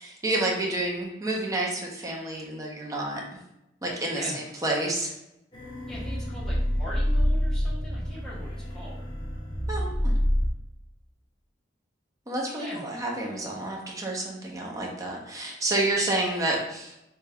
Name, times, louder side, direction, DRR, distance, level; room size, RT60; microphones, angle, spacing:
voice 1, 0.0-3.2 3.8-5.1 9.7-10.1 12.3-17.0, right 2 dB, 20° right, -2 dB, 0.6 m, -29 dB
sound 1, 5.5-10.5, equal, 25° left, 0.5 m, -27 dB
voice 2, 5.9-9.0 12.6-12.8, left 1 dB, 5° left, -9 dB, 1.0 m, -41 dB
3.5 x 2.2 x 3.3 m, 0.87 s
head